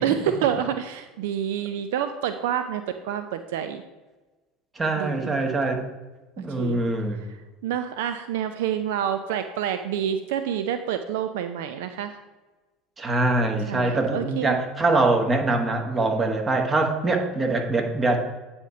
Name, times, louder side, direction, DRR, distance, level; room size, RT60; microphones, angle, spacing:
voice 1, 0.0-3.8 5.0-5.4 6.5-6.8 7.6-12.2 13.7-14.6, right 9 dB, 70° right, 9 dB, 0.4 m, -28 dB
voice 2, 4.7-5.8 6.4-7.2 13.0-18.2, right 2 dB, 25° right, 3 dB, 1.4 m, -23 dB
9.0 x 4.3 x 4.9 m, 1.2 s
hypercardioid pair, 75°, 0 cm